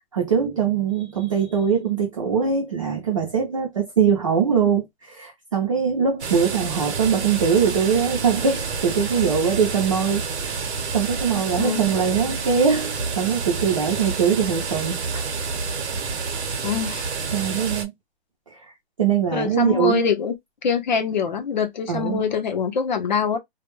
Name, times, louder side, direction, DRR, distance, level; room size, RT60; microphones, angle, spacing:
voice 1, 0.1-15.3 17.3-17.9 18.5-18.6 19.0-20.0 21.9-22.2, right 6 dB, 30° right, 0.5 m, -22 dB
sound 1, 6.2-17.8, right 4 dB, 70° right, 0.8 m, -29 dB
voice 2, 11.6-11.9 16.6-17.1 19.3-20.4 20.6-23.4, left 6 dB, 40° left, 0.7 m, -24 dB
2.2 x 2.2 x 3.0 m
hypercardioid pair, 175°, 34 cm